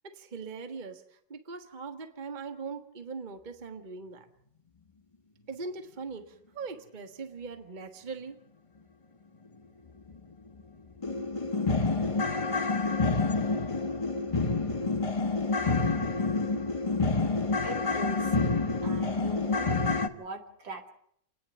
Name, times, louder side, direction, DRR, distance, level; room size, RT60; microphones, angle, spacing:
voice 1, 0.0-4.3 5.5-8.4, right 4 dB, 25° right, 7 dB, 1.4 m, -41 dB
sound 1, 10.1-10.2 10.6-10.7 11.0-20.1, left 3 dB, 25° left, 0.9 m, -28 dB
voice 2, 17.6-18.4 18.8-20.9, right 2 dB, 70° right, 3 dB, 3.0 m, -42 dB
30.0 x 10.0 x 8.9 m, 0.70 s
omnidirectional pair, 2.1 m